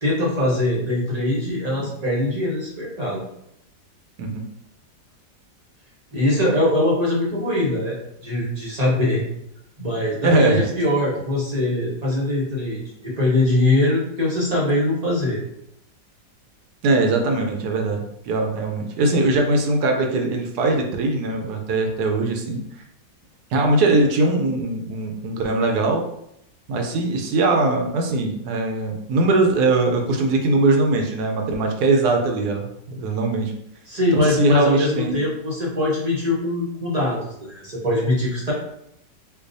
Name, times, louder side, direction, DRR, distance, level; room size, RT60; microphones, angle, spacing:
voice 1, 0.0-3.2 6.1-9.2 9.8-15.4 33.9-38.5, left 1 dB, 40° right, -5 dB, 0.6 m, -22 dB
voice 2, 10.2-10.7 16.8-22.6 23.5-26.0 26.7-33.5 34.1-35.2, right 2 dB, 70° right, 2 dB, 1.0 m, -21 dB
4.6 x 2.3 x 2.6 m, 0.75 s
omnidirectional pair, 1.9 m